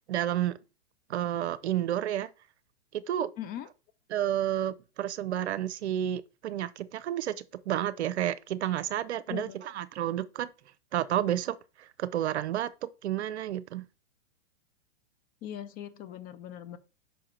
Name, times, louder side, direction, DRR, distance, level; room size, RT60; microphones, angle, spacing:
voice 1, 0.1-0.6 1.1-2.3 2.9-3.3 4.1-7.3 7.7-10.5 10.9-13.8, right 11 dB, 65° right, 0.7 m, -31 dB
voice 2, 3.4-3.7 9.3-9.7 15.4-16.8, left 11 dB, 25° left, 0.5 m, -40 dB
5.6 x 4.8 x 4.4 m
hypercardioid pair, 105°, 36 cm